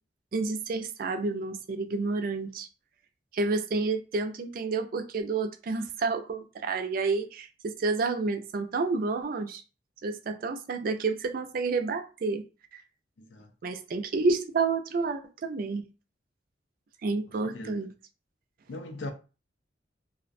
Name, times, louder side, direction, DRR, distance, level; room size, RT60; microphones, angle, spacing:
voice 1, 0.3-2.7 3.3-9.6 10.0-12.4 12.7-12.8 13.6-15.8 17.0-17.9, right 3 dB, 50° right, 0.3 m, -29 dB
voice 2, 13.2-13.5 17.4-17.8 18.7-19.1, left 2 dB, 85° left, 0.4 m, -39 dB
2.4 x 2.0 x 2.5 m
head